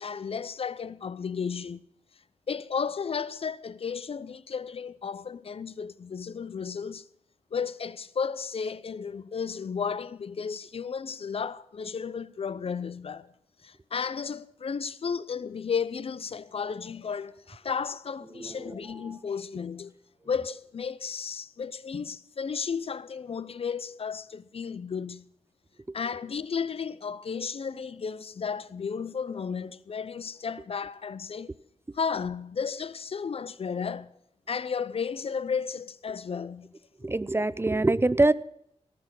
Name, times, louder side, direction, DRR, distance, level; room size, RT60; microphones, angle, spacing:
voice 1, 0.0-1.8 2.5-7.0 7.5-13.3 13.6-19.9 20.3-25.2 25.9-31.5 31.9-34.1 34.5-36.7, left 6 dB, 55° left, 0.6 m, -33 dB
voice 2, 18.4-18.8 19.1-19.2 37.0-38.3, right 2 dB, 20° right, 0.5 m, -24 dB
18.0 x 6.2 x 7.4 m
cardioid pair, 65°, 12 cm